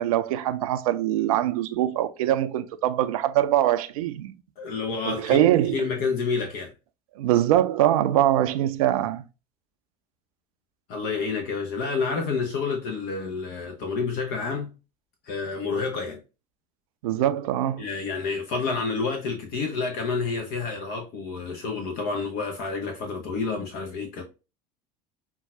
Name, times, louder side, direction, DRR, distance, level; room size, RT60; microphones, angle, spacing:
voice 1, 0.0-4.3 5.0-5.9 7.2-9.2 17.0-17.8, right 12 dB, 60° right, 0.4 m, -23 dB
voice 2, 4.6-6.7 10.9-14.7 15.2-16.2 17.8-24.2, left 4 dB, 45° left, 0.7 m, -29 dB
5.5 x 2.3 x 2.4 m
figure-of-eight pair, 70°, 21 cm